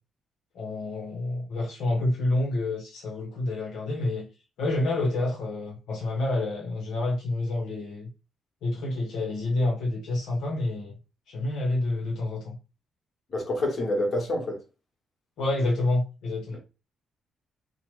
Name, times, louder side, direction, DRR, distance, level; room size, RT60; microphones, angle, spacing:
voice 1, 0.5-4.3 4.6-8.1 8.6-10.9 11.3-12.6 15.4-16.6, left 2 dB, 85° left, 0.8 m, -28 dB
voice 2, 13.3-14.6, left 1 dB, 50° left, 1.2 m, -27 dB
2.9 x 2.1 x 3.0 m
cardioid pair, 85°, 0 cm